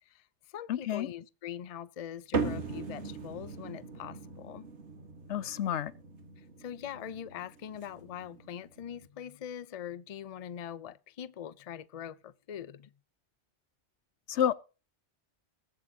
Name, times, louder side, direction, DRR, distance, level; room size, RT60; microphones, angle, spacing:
voice 1, 0.1-4.7 6.4-12.9, left 9 dB, 40° left, 0.6 m, -43 dB
voice 2, 0.7-1.1 5.3-5.9 14.3-14.5, left 10 dB, 80° left, 1.0 m, -29 dB
sound 1, 2.3-9.1, right 4 dB, 80° right, 2.0 m, -39 dB
21.5 x 7.6 x 2.8 m
omnidirectional pair, 1.1 m